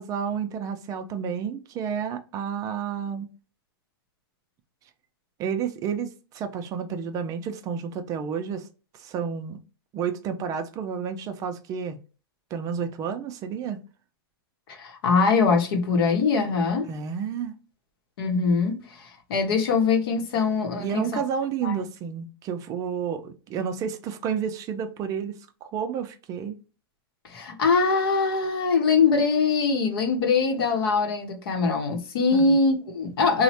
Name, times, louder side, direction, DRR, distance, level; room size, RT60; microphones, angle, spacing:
voice 1, 0.0-3.3 5.4-8.7 8.9-9.6 9.9-12.0 12.5-13.8 16.8-17.5 20.8-26.5 32.3-32.6, right 7 dB, 25° right, 0.4 m, -31 dB
voice 2, 14.7-16.9 18.2-21.2 21.6-21.8 27.2-33.4, left 4 dB, 75° left, 0.8 m, -23 dB
3.0 x 2.1 x 2.8 m
hypercardioid pair, 140°, 13 cm